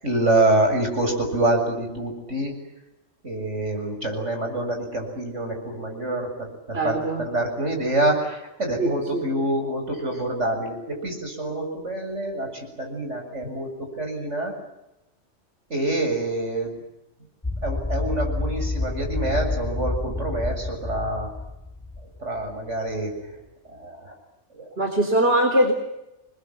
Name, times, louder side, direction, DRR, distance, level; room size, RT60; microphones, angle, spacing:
voice 1, 0.0-2.6 3.2-14.6 15.7-16.8 17.6-21.3 22.2-24.2 24.5-24.7, right 1 dB, 80° right, 3 dB, 7.8 m, -26 dB
voice 2, 6.7-7.2 8.8-9.2 24.8-25.7, right 1 dB, 60° right, 4 dB, 4.1 m, -21 dB
sound 1, 17.4-22.5, left 2 dB, 15° left, 3.5 m, -29 dB
29.5 x 22.0 x 9.1 m, 0.91 s
omnidirectional pair, 1.2 m